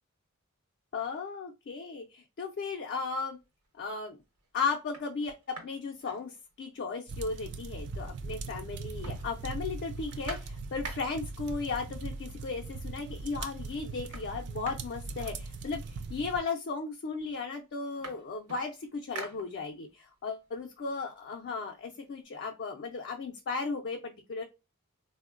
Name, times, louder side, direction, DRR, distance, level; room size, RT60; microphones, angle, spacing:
voice 1, 0.9-3.4 3.8-4.2 4.5-5.4 5.6-24.4, left 4 dB, 50° left, 3 dB, 0.4 m, -36 dB
sound 1, 3.4-3.9 4.4-4.5 4.8-6.9 7.2-7.3 7.5-8.4 8.7-11.4 12.3-12.4 12.8-13.3 13.6-16.0 16.8-16.9 17.2-20.0 20.4-22.1, right 3 dB, 90° right, 0.9 m, -48 dB
sound 2, 7.1-16.4, right 3 dB, 55° right, 0.4 m, -40 dB
3.6 x 2.1 x 2.4 m, 0.26 s
head